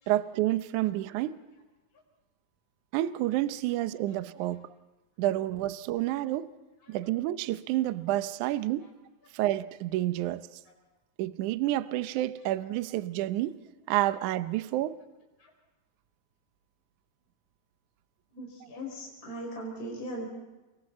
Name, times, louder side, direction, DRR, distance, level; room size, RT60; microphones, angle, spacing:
voice 1, 0.1-1.4 2.9-4.7 5.2-6.5 6.9-8.9 9.3-10.5 11.2-13.6 13.9-15.0, right 15 dB, 90° right, 1.7 m, -29 dB
voice 2, 18.3-20.3, right 1 dB, 20° left, 5.5 m, -39 dB
28.0 x 23.0 x 4.2 m
omnidirectional pair, 4.6 m